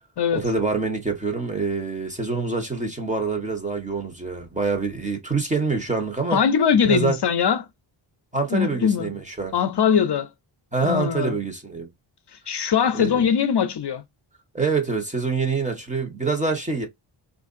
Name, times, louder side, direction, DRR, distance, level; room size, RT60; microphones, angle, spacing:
voice 1, 0.3-6.4 6.8-7.2 8.3-9.6 10.7-11.9 12.9-13.3 14.5-16.9, right 4 dB, 15° right, 1.1 m, -25 dB
voice 2, 6.3-7.7 8.5-9.1 9.5-10.3 10.8-11.4 12.5-14.0, left 7 dB, 55° left, 0.6 m, -21 dB
4.5 x 2.5 x 2.5 m
wide cardioid pair, 175°, 48 cm